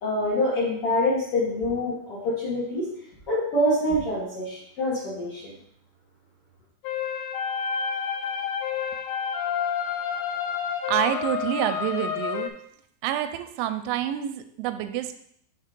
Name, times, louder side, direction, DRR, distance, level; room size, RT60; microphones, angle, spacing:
voice 1, 0.0-2.9 3.3-5.5, left 1 dB, 65° left, -7 dB, 1.4 m, -25 dB
sound 1, 6.8-12.5, left 7 dB, 80° left, 2.4 m, -29 dB
voice 2, 10.9-12.5 13.0-15.2, right 11 dB, 90° right, 9 dB, 2.9 m, -27 dB
6.8 x 3.7 x 5.1 m, 0.68 s
omnidirectional pair, 5.2 m